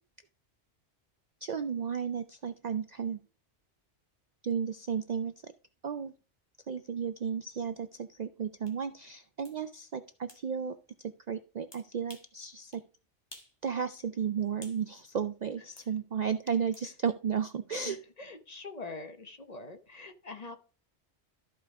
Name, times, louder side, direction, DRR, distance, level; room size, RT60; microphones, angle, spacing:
voice 1, 1.4-3.2 4.4-5.5 5.8-6.1 6.7-10.8 11.0-12.8 13.6-18.0, right 7 dB, 55° right, 11 dB, 0.5 m, -33 dB
sound 1, 8.7-8.8 9.4-9.6 10.3-10.4 11.7-12.3 12.7-12.9 13.3-13.6 13.9-14.8 15.8-15.9 16.7-16.9, left 1 dB, 20° left, 1.6 m, -52 dB
voice 2, 17.8-20.6, left 3 dB, 40° left, 7 dB, 1.0 m, -44 dB
13.5 x 5.0 x 3.6 m, 0.36 s
omnidirectional pair, 1.2 m